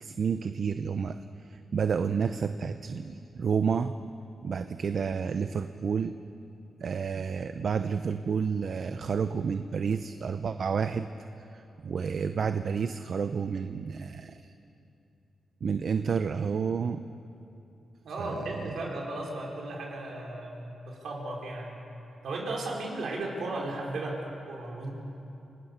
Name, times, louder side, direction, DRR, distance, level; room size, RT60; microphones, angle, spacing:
voice 1, 0.0-4.0 4.4-6.1 6.8-11.1 11.5-14.4 15.6-17.0 18.2-18.7, right 6 dB, 60° right, 9 dB, 0.7 m, -30 dB
voice 2, 18.0-21.8 22.2-24.9, right 2 dB, 75° right, -1 dB, 4.9 m, -35 dB
29.0 x 19.0 x 6.8 m, 2.8 s
cardioid pair, 95°, 0 cm